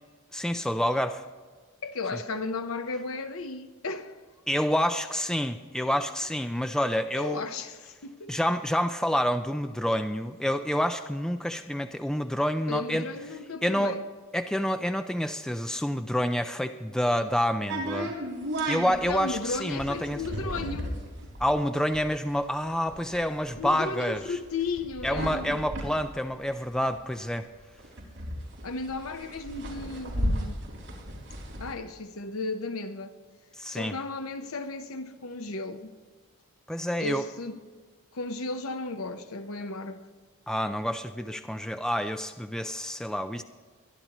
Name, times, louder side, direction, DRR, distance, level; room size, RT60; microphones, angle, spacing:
voice 1, 0.3-1.2 4.5-7.4 8.3-13.1 13.6-14.0 14.3-18.1 18.7-20.2 21.4-24.4 25.0-27.4 33.6-34.0 36.7-37.2 40.5-43.4, equal, 5° left, 0.3 m, -28 dB
voice 2, 1.8-4.2 7.2-8.4 12.7-14.0 19.1-21.0 23.6-25.5 28.6-30.6 31.6-33.1 33.7-36.0 37.0-37.6 38.1-40.0, left 3 dB, 80° left, 0.9 m, -34 dB
sound 1, 17.7-27.2 27.5-27.6 27.8-31.7, equal, 65° right, 4.2 m, -34 dB
22.5 x 11.0 x 3.0 m
head